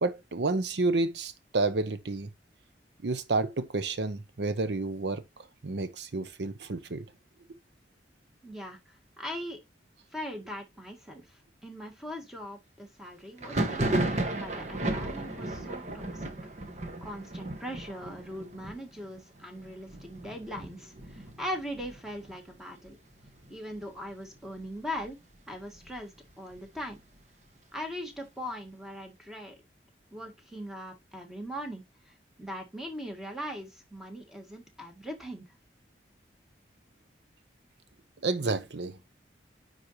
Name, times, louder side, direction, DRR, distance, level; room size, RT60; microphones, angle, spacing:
voice 1, 0.0-2.3 3.0-5.2 5.6-7.1 38.2-38.9, right 3 dB, 70° right, 0.7 m, -30 dB
voice 2, 8.4-9.6 10.1-16.3 17.0-23.0 23.5-25.2 25.5-26.1 26.4-27.0 27.7-29.5 30.1-35.4, equal, ahead, 1.6 m, -40 dB
Thunder, 13.4-22.9 23.2-23.8 24.1-25.1 25.5-27.2, right 1 dB, 40° right, 1.3 m, -35 dB
9.7 x 3.9 x 3.0 m
head